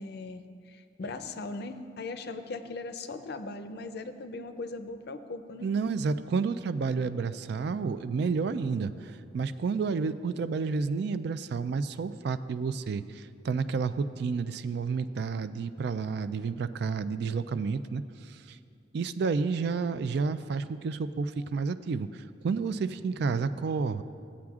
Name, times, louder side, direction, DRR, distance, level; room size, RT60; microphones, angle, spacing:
voice 1, 0.0-5.7, left 3 dB, 60° left, 9 dB, 0.5 m, -39 dB
voice 2, 5.6-18.6 18.9-22.1 22.4-24.0, right 5 dB, 60° right, 13 dB, 0.3 m, -30 dB
16.0 x 8.5 x 2.4 m, 2.4 s
head